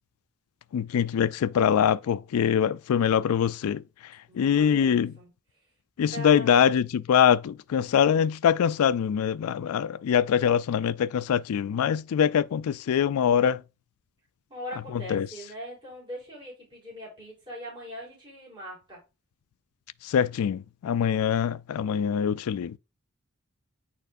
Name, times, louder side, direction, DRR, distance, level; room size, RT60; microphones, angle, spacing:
voice 1, 0.7-3.8 4.3-5.1 6.0-13.6 15.1-15.3 20.0-22.8, left 8 dB, 85° left, 0.3 m, -23 dB
voice 2, 4.3-5.3 6.1-6.7 14.5-19.0, equal, 25° right, 3.7 m, -41 dB
9.0 x 4.3 x 2.6 m
head